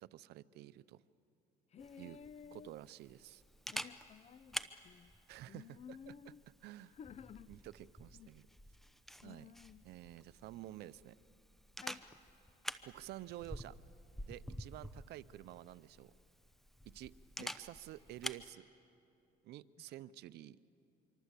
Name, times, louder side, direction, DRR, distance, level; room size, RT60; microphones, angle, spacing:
voice 1, 0.0-1.0 2.0-2.2 2.5-3.4 5.3-6.1 6.6-7.0 7.5-8.4 9.2-9.5 9.8-11.2 12.8-13.8 14.3-16.1 16.9-17.1 17.4-18.7 19.4-20.6, right 14 dB, 80° right, 17 dB, 0.7 m, -50 dB
voice 2, 1.7-2.8 3.7-5.1 5.5-6.4 6.9-7.5 8.1-8.3 9.2-9.8 11.8-12.0 17.4-17.5, left 7 dB, 40° left, 18 dB, 0.6 m, -54 dB
Camera, 1.8-18.5, equal, ahead, 0.8 m, -49 dB
25.5 x 24.5 x 8.3 m, 2.8 s
cardioid pair, 110°, 17 cm